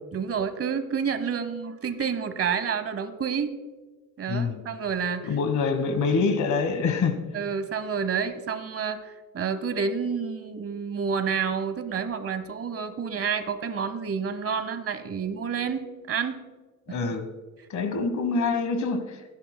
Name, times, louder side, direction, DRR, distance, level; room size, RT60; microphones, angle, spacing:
voice 1, 0.1-3.6 4.2-5.3 7.3-16.4 16.9-17.0, right 6 dB, 50° right, 11 dB, 1.0 m, -29 dB
voice 2, 4.3-4.6 5.2-7.2 16.9-17.3 17.7-19.4, left 4 dB, 70° left, 9 dB, 1.3 m, -26 dB
25.5 x 10.5 x 2.2 m, 1.2 s
wide cardioid pair, 140°, 30 cm